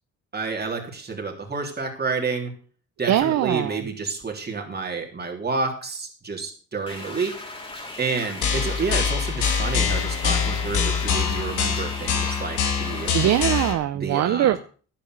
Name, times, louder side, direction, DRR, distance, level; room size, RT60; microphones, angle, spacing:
voice 1, 0.3-2.5 3.0-7.4 8.0-13.1 13.9-14.6, right 4 dB, 35° right, 2 dB, 3.6 m, -29 dB
voice 2, 3.1-3.7 13.1-14.6, right 12 dB, 60° right, 12 dB, 0.6 m, -21 dB
sound 1, 6.9-13.7, left 2 dB, 20° left, 3.3 m, -38 dB
sound 2, 8.4-13.7, left 6 dB, 85° left, 3.2 m, -24 dB
11.0 x 8.9 x 6.6 m, 0.42 s
cardioid pair, 90°, 30 cm